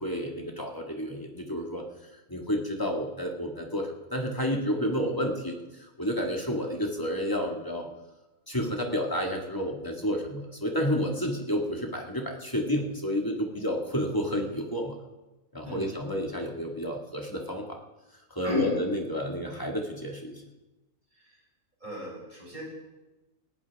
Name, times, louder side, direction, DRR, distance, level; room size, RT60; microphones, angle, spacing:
voice 1, 0.0-1.8 2.3-5.6 6.0-7.9 8.5-15.0 15.5-17.8 18.3-20.4, equal, 15° left, 0 dB, 2.0 m, -30 dB
voice 2, 15.6-16.2 18.4-18.8 21.1-21.4 21.8-22.6, left 2 dB, 35° right, -5 dB, 7.3 m, -34 dB
19.0 x 17.5 x 3.6 m, 1.1 s
omnidirectional pair, 1.4 m